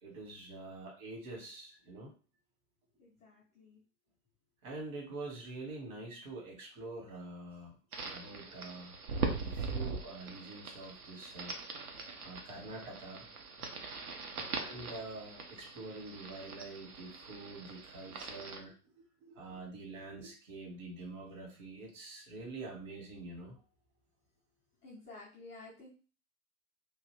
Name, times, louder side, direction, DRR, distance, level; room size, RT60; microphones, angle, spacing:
voice 1, 0.0-2.1 4.6-9.0 9.3-11.6 12.2-13.3 14.5-18.7 19.2-23.6, right 2 dB, 55° right, -1 dB, 1.7 m, -46 dB
voice 2, 3.0-3.8 12.0-12.2 13.6-13.7 14.3-14.7 24.8-25.9, left 3 dB, 10° left, -9 dB, 0.3 m, -53 dB
sound 1, 7.9-18.6, right 4 dB, 70° right, 0.8 m, -41 dB
2.8 x 2.7 x 3.2 m, 0.37 s
figure-of-eight pair, 95°, 46 cm